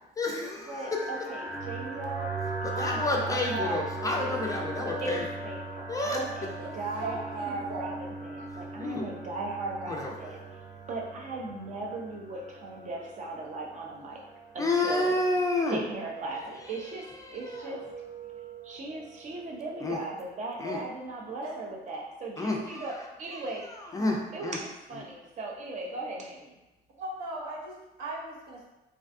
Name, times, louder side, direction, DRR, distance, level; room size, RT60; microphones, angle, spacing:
voice 1, 0.2-1.1 2.6-5.3 5.9-6.2 8.8-9.1 9.9-10.4 14.6-15.8 17.2-17.9 19.8-20.0 20.6-20.8 22.4-24.6 24.9-25.0, left 2 dB, 20° left, 0 dB, 0.3 m, -30 dB
sound 1, 0.6-20.3, right 2 dB, 25° right, 0.9 m, -40 dB
voice 2, 0.7-2.3 2.6-3.8 4.1-4.6 5.0-7.9 8.2-10.4 10.9-14.2 14.5-15.1 15.7-17.1 17.3-17.8 18.6-23.6 24.3-26.6, right 2 dB, 45° right, -1 dB, 0.6 m, -37 dB
voice 3, 7.0-8.0 20.6-20.8 21.4-21.7 27.0-28.6, right 1 dB, 75° right, -4 dB, 0.8 m, -38 dB
2.4 x 2.3 x 2.5 m, 1.0 s
cardioid pair, 110°, 17 cm